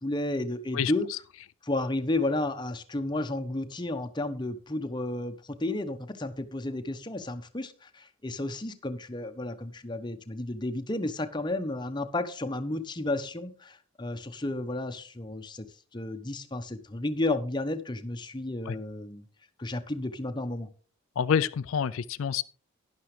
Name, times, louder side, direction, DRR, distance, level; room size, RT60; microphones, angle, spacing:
voice 1, 0.0-1.1 1.6-15.7 15.9-19.2 19.6-20.7, left 2 dB, 20° left, 0.9 m, -32 dB
voice 2, 0.7-1.2 18.7-18.8 21.2-22.4, left 7 dB, 75° left, 0.4 m, -28 dB
12.0 x 10.5 x 3.3 m
head